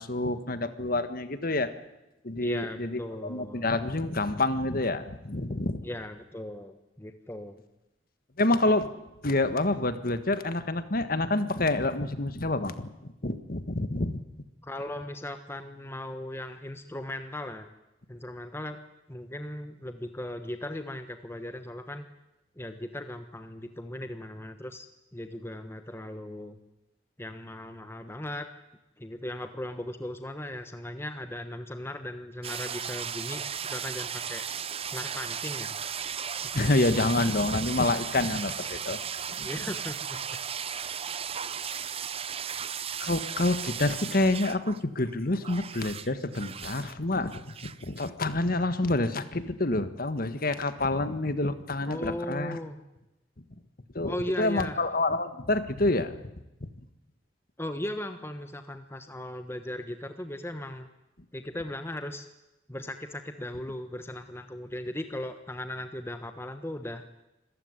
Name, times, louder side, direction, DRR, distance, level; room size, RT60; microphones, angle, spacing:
voice 1, 0.0-1.7 2.2-5.8 8.4-8.9 9.2-12.9 13.2-14.2 36.5-39.0 43.0-52.6 53.9-56.2, left 2 dB, 50° left, 11 dB, 1.6 m, -28 dB
voice 2, 2.4-3.7 5.8-7.6 14.6-17.7 18.1-18.8 19.1-22.1 22.6-24.9 25.1-26.6 27.2-28.5 29.0-34.4 34.9-36.0 39.4-40.4 51.9-52.8 54.0-54.9 57.6-60.9 61.3-62.2 62.7-67.0, left 1 dB, 15° left, 8 dB, 1.2 m, -37 dB
sound 1, 32.4-44.8 45.1-46.9 47.3-48.1, right 8 dB, 30° right, 0.7 m, -36 dB
26.0 x 14.5 x 9.8 m, 0.96 s
head